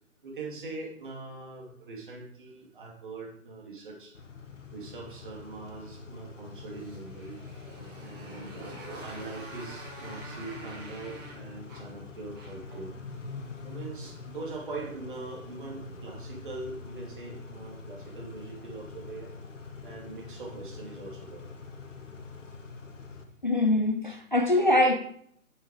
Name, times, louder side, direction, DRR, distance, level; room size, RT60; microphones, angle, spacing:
voice 1, 0.2-4.2 4.7-7.4 8.0-8.5 9.0-12.9 13.6-19.3 19.8-21.4, right 3 dB, 35° right, 2.4 m, -42 dB
Car / Idling / Accelerating revving vroom, 4.1-23.2, left 4 dB, 60° left, 1.4 m, -45 dB
Motorcycle, 6.4-12.8, right 2 dB, 15° right, 1.4 m, -46 dB
voice 2, 23.4-25.0, left 1 dB, 35° left, 0.5 m, -23 dB
8.4 x 6.4 x 4.8 m
figure-of-eight pair, 145°, 42 cm